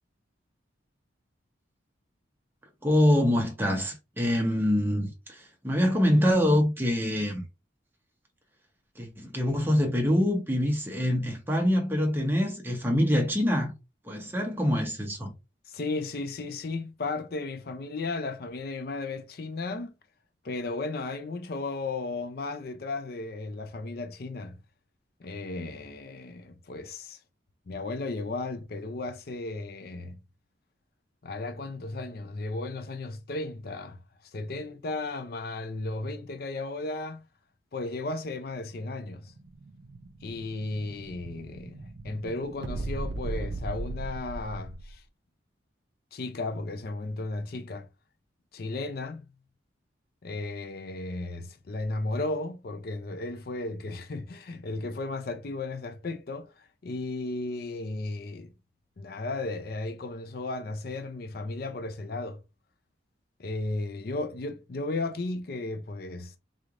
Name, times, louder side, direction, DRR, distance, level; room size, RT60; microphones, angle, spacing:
voice 1, 2.8-7.4 9.0-13.7 14.0-15.3, left 1 dB, 10° right, 0.8 m, -25 dB
voice 2, 15.6-19.9 20.4-24.6 25.2-27.2 27.7-30.2 31.2-37.2 37.7-39.3 40.2-45.0 46.1-47.9 48.5-49.2 50.2-58.5 59.0-62.4 63.4-66.4, left 2 dB, 55° left, 0.5 m, -35 dB
Explosion, 39.1-45.0, right 2 dB, 65° right, 0.5 m, -38 dB
3.8 x 3.2 x 2.5 m
head